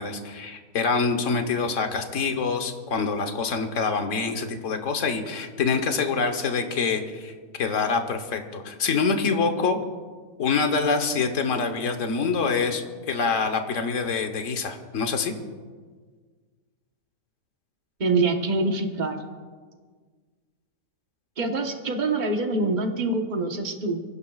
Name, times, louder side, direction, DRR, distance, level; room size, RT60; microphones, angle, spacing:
voice 1, 0.0-7.3 7.6-9.8 10.4-12.8 13.1-15.3, left 4 dB, 60° left, 6 dB, 1.4 m, -25 dB
voice 2, 18.0-19.2 21.4-24.0, right 3 dB, 35° right, 4 dB, 1.2 m, -25 dB
24.5 x 15.5 x 2.4 m, 1.5 s
omnidirectional pair, 1.5 m